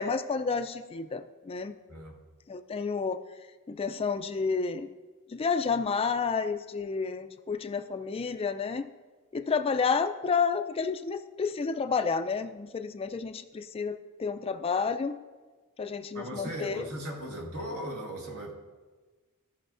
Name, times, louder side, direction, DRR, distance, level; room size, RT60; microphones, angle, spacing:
voice 1, 0.0-1.7 2.5-3.2 3.7-4.9 5.3-8.9 9.3-15.2 15.8-16.8, left 5 dB, 25° left, 9 dB, 0.3 m, -30 dB
voice 2, 16.1-18.5, right 1 dB, 75° right, -1 dB, 1.7 m, -37 dB
16.5 x 5.7 x 2.5 m, 1.3 s
head